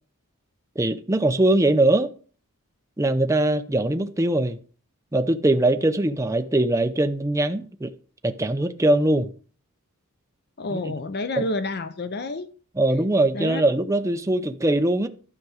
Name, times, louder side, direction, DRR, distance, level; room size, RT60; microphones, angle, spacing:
voice 1, 0.8-2.1 3.0-4.6 5.1-7.9 8.2-9.3 10.7-10.9 11.4-11.5 12.8-15.1, right 1 dB, 15° right, 0.5 m, -21 dB
voice 2, 10.6-12.5 13.3-13.6, left 2 dB, 45° left, 0.6 m, -29 dB
12.0 x 5.9 x 4.9 m
head